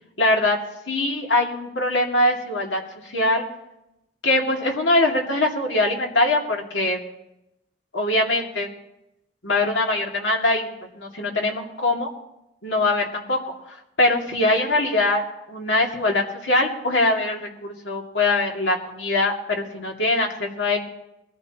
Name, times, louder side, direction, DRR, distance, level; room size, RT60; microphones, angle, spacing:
voice 1, 0.2-0.6 0.9-3.5 4.2-7.0 7.9-8.7 9.4-10.7 10.9-12.1 12.6-13.4 13.7-15.2 15.5-20.8, left 2 dB, 90° left, 0 dB, 2.4 m, -22 dB
21.5 x 14.0 x 3.0 m, 0.85 s
head